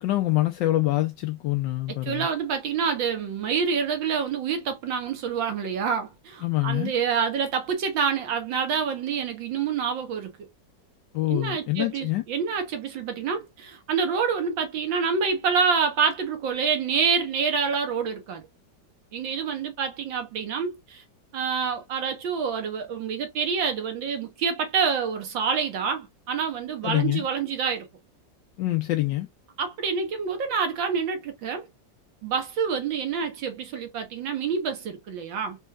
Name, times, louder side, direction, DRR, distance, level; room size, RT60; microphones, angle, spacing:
voice 1, 0.0-2.3 6.4-6.9 11.1-12.2 26.8-27.2 28.6-29.3, left 17 dB, 75° left, 1.2 m, -25 dB
voice 2, 2.0-10.3 11.3-18.4 19.1-21.0 21.3-27.9 29.6-31.7 32.2-35.6, right 6 dB, 80° right, 1.8 m, -27 dB
4.4 x 3.1 x 2.3 m
omnidirectional pair, 2.0 m